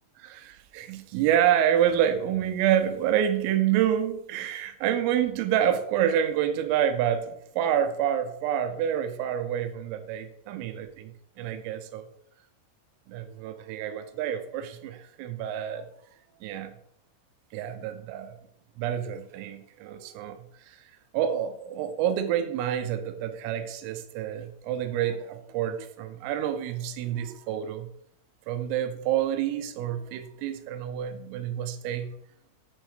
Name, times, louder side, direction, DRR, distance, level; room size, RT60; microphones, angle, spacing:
voice 1, 0.7-12.1 13.1-15.9 16.4-16.7 17.5-18.4 18.8-20.8 21.1-27.9 28.5-32.2, right 10 dB, 85° right, 9 dB, 3.5 m, -28 dB
9.0 x 6.3 x 5.0 m, 0.70 s
omnidirectional pair, 5.8 m